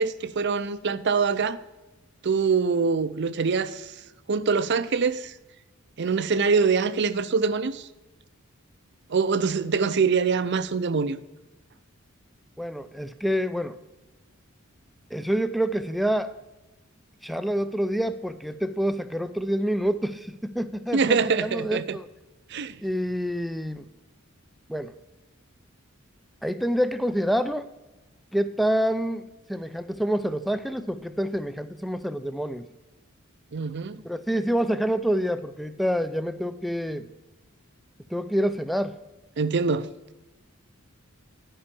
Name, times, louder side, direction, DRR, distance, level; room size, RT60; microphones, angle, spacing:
voice 1, 0.0-1.6 2.2-4.0 4.3-5.3 6.0-7.9 9.1-11.2 20.9-22.0 22.5-22.8 33.5-34.0 39.4-39.9, right 5 dB, 55° right, 0.5 m, -24 dB
voice 2, 12.6-13.8 15.1-16.3 17.2-22.1 22.8-23.8 24.7-24.9 26.4-27.7 28.3-32.7 34.0-37.1 38.1-39.0, equal, ahead, 0.4 m, -27 dB
11.5 x 5.6 x 7.0 m
head